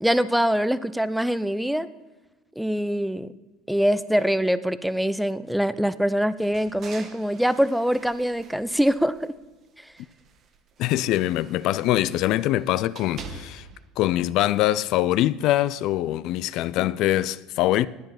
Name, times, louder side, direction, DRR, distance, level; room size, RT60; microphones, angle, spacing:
voice 1, 0.0-1.9 2.6-3.3 3.7-9.3 9.8-9.9, equal, ahead, 0.5 m, -24 dB
sound 1, 6.4-9.5 9.9-13.9, right 4 dB, 45° right, 1.3 m, -46 dB
voice 2, 10.8-13.7 14.0-17.9, left 14 dB, 60° left, 0.3 m, -23 dB
10.5 x 9.0 x 5.8 m
supercardioid pair, 105°, 0 cm